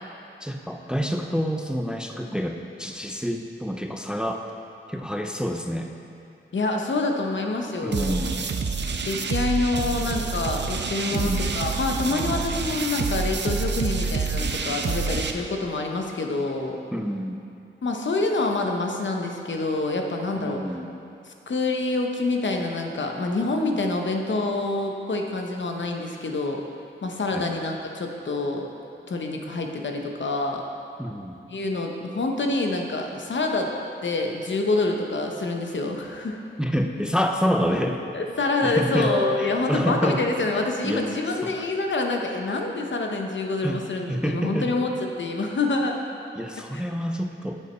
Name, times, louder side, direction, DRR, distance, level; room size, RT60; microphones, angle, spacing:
voice 1, 0.4-4.4 4.9-5.9 7.8-8.5 11.1-11.4 16.9-17.4 20.3-21.0 27.3-27.5 31.0-31.4 36.6-38.0 38.6-39.1 39.4-40.2 40.5-41.0 41.4-41.5 43.6-43.8 44.1-44.7 46.3-47.6, equal, 5° right, 3 dB, 0.4 m, -27 dB
voice 2, 6.5-8.2 9.0-16.8 17.8-20.6 21.3-26.6 27.0-28.7 29.1-30.6 31.5-33.7 34.0-36.4 38.1-44.9 45.2-46.0 46.7-46.8, left 3 dB, 65° left, 2 dB, 0.8 m, -26 dB
sound 1, 7.9-15.3, right 4 dB, 60° right, 0.5 m, -27 dB
sound 2, 39.0-40.5, left 1 dB, 25° right, 1.3 m, -31 dB
8.3 x 6.7 x 4.4 m, 2.7 s
wide cardioid pair, 105°, 20 cm